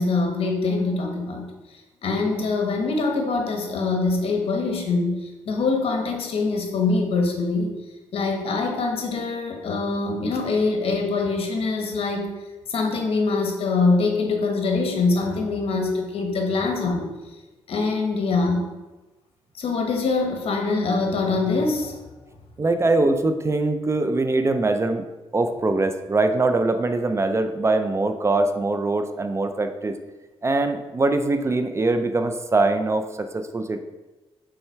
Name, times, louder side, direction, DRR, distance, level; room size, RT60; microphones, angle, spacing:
voice 1, 0.0-1.5 2.0-7.7 8.1-12.3 12.7-17.1 17.7-18.6 19.6-22.0, left 3 dB, 70° left, 3 dB, 1.2 m, -24 dB
voice 2, 22.6-25.1 25.3-30.0 30.4-33.8, right 2 dB, 25° right, 8 dB, 0.5 m, -22 dB
5.6 x 4.3 x 4.5 m, 1.1 s
cardioid pair, 95°, 10 cm